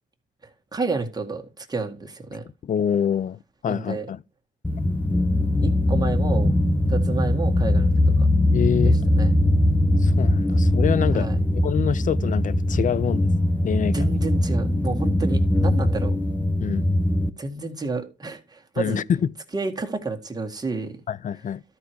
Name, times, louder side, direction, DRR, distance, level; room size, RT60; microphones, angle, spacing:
voice 1, 0.7-2.4 3.7-4.1 5.6-6.5 6.9-7.9 8.8-9.4 11.1-11.4 13.9-16.1 17.4-19.0 19.5-20.9, right 3 dB, 20° right, 1.9 m, -30 dB
voice 2, 2.6-4.2 8.5-9.0 10.0-11.3 11.6-13.3 13.6-14.1 16.6-16.9 18.8-19.3 21.1-21.6, left 8 dB, 40° left, 0.5 m, -25 dB
sound 1, 4.6-17.3, left 1 dB, 10° left, 0.8 m, -21 dB
13.0 x 4.7 x 4.7 m
cardioid pair, 90°, 20 cm